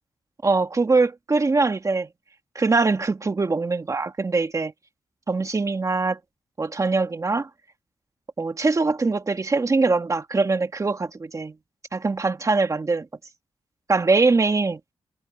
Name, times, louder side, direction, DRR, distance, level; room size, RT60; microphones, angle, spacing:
voice 1, 0.4-2.1 2.6-4.7 5.3-6.2 6.6-7.5 8.4-11.5 11.9-13.1 13.9-14.8, right 3 dB, 35° right, 1.7 m, -22 dB
cardioid pair, 85°, 9 cm